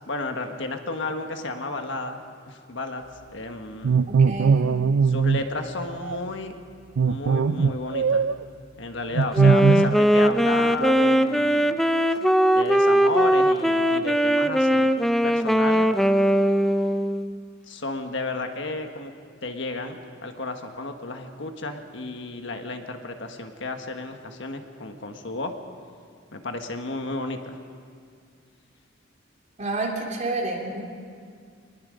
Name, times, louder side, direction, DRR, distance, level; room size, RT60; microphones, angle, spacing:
voice 1, 0.0-2.2 2.4-3.0 3.3-4.0 5.0-6.6 7.1-8.3 8.8-11.8 12.5-14.9 15.2-15.9 17.7-19.1 19.4-25.5 26.3-27.6, left 3 dB, 70° left, 5 dB, 1.5 m, -32 dB
sound 1, 3.8-5.4 6.0-6.2 7.0-8.4 9.1-10.0 10.3-11.2, right 5 dB, 85° right, 0.4 m, -21 dB
voice 2, 4.1-4.6 29.6-30.8, right 2 dB, 40° right, -1 dB, 3.4 m, -29 dB
Wind instrument woodwind instrument, 9.3-17.4, equal, ahead, 0.5 m, -20 dB
24.5 x 20.5 x 5.2 m, 2.2 s
head